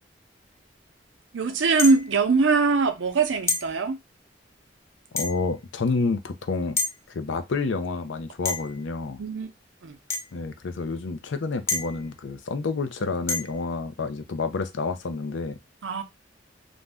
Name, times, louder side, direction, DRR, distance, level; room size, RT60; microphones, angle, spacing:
voice 1, 1.3-4.0 9.2-9.5 9.8-10.0 15.8-16.0, right 4 dB, 90° right, 0.6 m, -22 dB
sound 1, 1.8-2.2 3.5-3.7 5.2-5.5 6.8-7.0 8.5-8.8 10.1-10.3 11.7-12.1 13.3-13.6, left 3 dB, 15° left, 0.4 m, -28 dB
voice 2, 5.1-6.8 7.1-9.2 10.3-15.6, left 4 dB, 80° left, 0.5 m, -29 dB
2.5 x 2.2 x 3.3 m
head